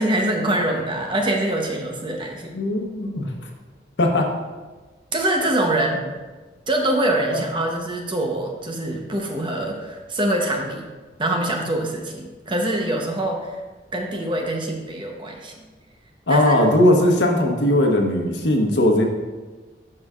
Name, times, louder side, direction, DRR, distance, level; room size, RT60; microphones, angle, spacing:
voice 1, 0.0-2.6 5.1-6.0 6.7-10.9 11.2-13.6 13.9-15.5 16.3-16.7, right 1 dB, 30° right, 1 dB, 0.9 m, -24 dB
voice 2, 2.5-3.3 4.0-4.3 16.3-19.0, left 1 dB, 85° left, 2 dB, 1.0 m, -18 dB
12.0 x 4.8 x 2.4 m, 1.3 s
head